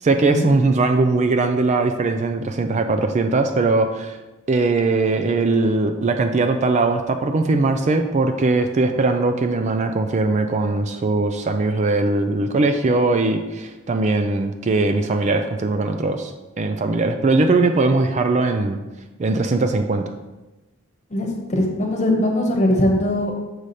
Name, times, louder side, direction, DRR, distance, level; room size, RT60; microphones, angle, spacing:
voice 1, 0.0-4.2 4.5-16.3 16.6-18.8 19.2-20.0, right 3 dB, 35° right, 7 dB, 0.4 m, -20 dB
voice 2, 21.1-23.4, left 1 dB, 35° left, 1 dB, 1.1 m, -20 dB
6.2 x 4.9 x 4.1 m, 1.1 s
head